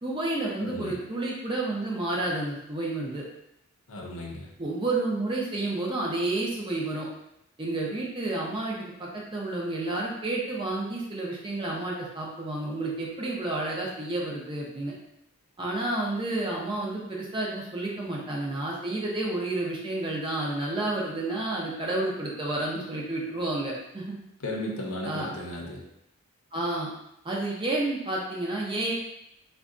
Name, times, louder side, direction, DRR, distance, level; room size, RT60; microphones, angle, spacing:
voice 1, 0.0-3.3 4.6-7.1 7.6-14.9 15.6-24.1 25.0-25.3 26.5-26.9 27.2-28.9, right 2 dB, 20° right, -3 dB, 0.5 m, -30 dB
voice 2, 0.6-1.0 3.9-4.5 24.4-25.8, left 1 dB, 70° left, -1 dB, 0.6 m, -35 dB
3.7 x 2.2 x 2.5 m, 0.82 s
head